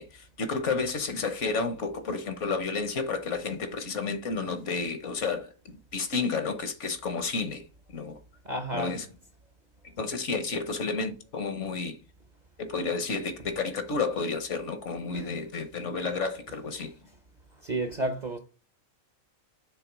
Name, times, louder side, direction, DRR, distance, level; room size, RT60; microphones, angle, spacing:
voice 1, 0.0-7.6 7.9-8.2 8.7-9.0 10.0-12.0 12.6-16.9, left 4 dB, 65° left, 1.3 m, -31 dB
voice 2, 8.4-9.0 15.1-15.3 17.6-18.4, right 1 dB, 40° right, 0.7 m, -31 dB
7.0 x 3.3 x 4.6 m
omnidirectional pair, 1.4 m